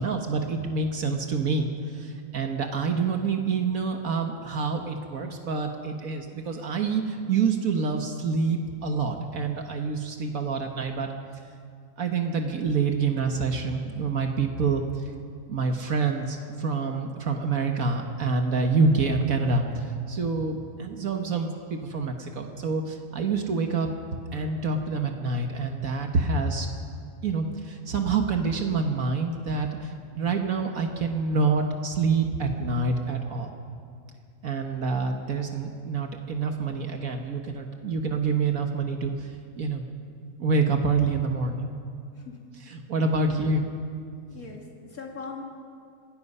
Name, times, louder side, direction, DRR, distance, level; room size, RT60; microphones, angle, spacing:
voice 1, 0.0-11.1 12.0-15.1 15.5-23.9 24.3-26.7 27.2-33.5 34.4-39.8 40.4-41.7 42.5-43.7, right 4 dB, 75° right, 4 dB, 1.7 m, -27 dB
voice 2, 44.3-45.4, left 4 dB, 80° left, -1 dB, 2.9 m, -40 dB
26.5 x 18.5 x 5.5 m, 2.2 s
omnidirectional pair, 1.5 m